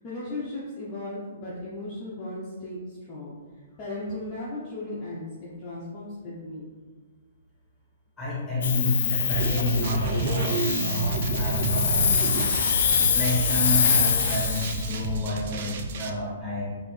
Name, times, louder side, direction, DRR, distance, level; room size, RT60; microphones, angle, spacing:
voice 1, 0.0-3.4 3.8-6.7, left 2 dB, 20° left, -8 dB, 0.7 m, -36 dB
voice 2, 8.2-12.5 12.9-16.8, left 1 dB, ahead, -7 dB, 1.2 m, -29 dB
Hiss, 8.6-14.9, left 7 dB, 60° left, 0.3 m, -25 dB
sound 1, 9.3-16.1, right 4 dB, 45° right, 0.4 m, -29 dB
4.2 x 2.7 x 3.2 m, 1.4 s
hypercardioid pair, 165°, 0 cm